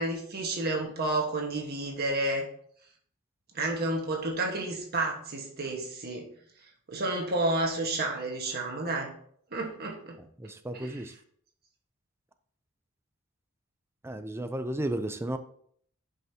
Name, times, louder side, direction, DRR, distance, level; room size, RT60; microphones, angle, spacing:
voice 1, 0.0-2.5 3.5-6.3 6.9-9.1 9.5-10.2 10.7-11.0, right 2 dB, 50° right, 0 dB, 1.4 m, -31 dB
voice 2, 10.4-11.1 14.0-15.4, right 1 dB, 10° right, 8 dB, 0.4 m, -33 dB
11.0 x 5.5 x 2.8 m, 0.63 s
head